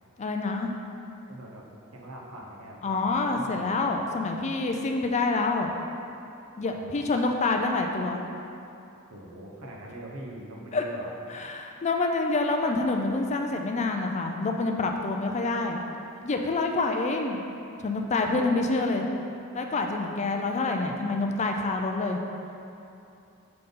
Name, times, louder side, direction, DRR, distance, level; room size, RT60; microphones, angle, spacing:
voice 1, 0.2-0.7 2.8-5.7 6.6-8.2 10.7-10.8 11.3-15.8 16.3-17.4 17.8-19.0 19.5-22.2, left 3 dB, 30° left, 3 dB, 0.4 m, -27 dB
voice 2, 1.3-1.7 1.9-3.9 6.7-6.9 9.1-11.1 18.5-18.6, right 1 dB, 75° right, -2 dB, 1.0 m, -42 dB
5.7 x 3.9 x 5.3 m, 2.8 s
head